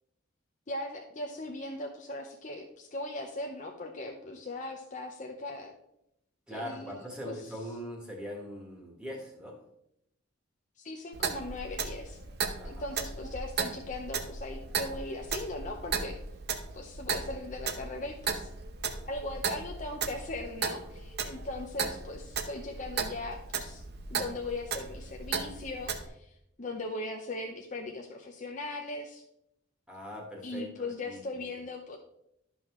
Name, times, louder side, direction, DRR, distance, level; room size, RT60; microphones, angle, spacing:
voice 1, 0.7-5.7 6.5-7.3 10.8-12.2 12.6-16.2 16.7-18.5 19.0-23.8 24.1-29.2 30.4-32.0, left 2 dB, 35° left, 2 dB, 0.7 m, -39 dB
voice 2, 6.5-9.6 12.6-12.9 29.9-31.4, equal, 5° right, -1 dB, 1.5 m, -41 dB
Clock, 11.1-26.1, right 5 dB, 55° right, 0.8 m, -36 dB
12.0 x 5.5 x 3.1 m, 0.77 s
head